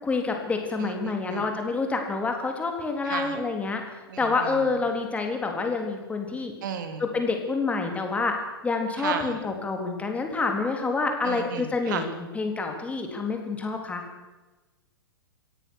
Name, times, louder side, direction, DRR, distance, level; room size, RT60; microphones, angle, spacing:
voice 1, 0.0-3.8 4.2-6.5 7.0-8.3 8.6-12.1 12.3-14.0, left 4 dB, 10° left, 3 dB, 3.7 m, -27 dB
voice 2, 0.8-1.4 3.0-3.4 4.1-4.6 6.6-7.1 9.0-9.4 11.2-12.1, right 7 dB, 50° right, 8 dB, 3.2 m, -34 dB
25.0 x 17.0 x 6.4 m, 1.1 s
figure-of-eight pair, 105°, 13 cm